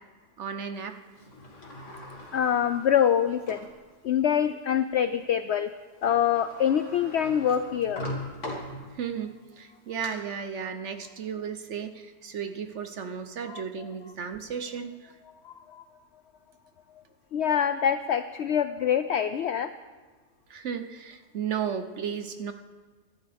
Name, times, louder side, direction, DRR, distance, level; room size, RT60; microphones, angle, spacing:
voice 1, 0.4-0.9 8.9-15.1 20.5-22.5, right 7 dB, 55° right, 8 dB, 0.9 m, -34 dB
Sliding door, 1.2-3.8 4.4-4.5 5.8-5.9 6.0-9.2 9.7-10.1, left 1 dB, 50° left, 2.4 m, -40 dB
voice 2, 2.3-3.7 4.0-5.7 6.0-8.1 13.5-13.6 15.4-15.8 17.3-19.7, left 9 dB, 80° left, 11 dB, 0.6 m, -25 dB
23.0 x 12.0 x 3.5 m, 1.4 s
omnidirectional pair, 1.7 m